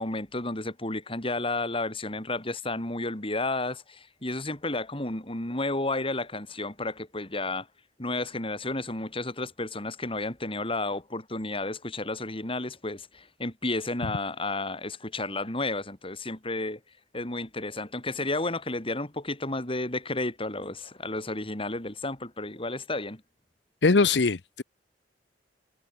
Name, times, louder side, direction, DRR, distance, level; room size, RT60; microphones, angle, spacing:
voice 1, 0.0-7.7 8.0-16.8 17.1-23.2, left 2 dB, 30° left, 5.7 m, -32 dB
voice 2, 23.8-24.6, left 4 dB, 80° left, 0.8 m, -21 dB
head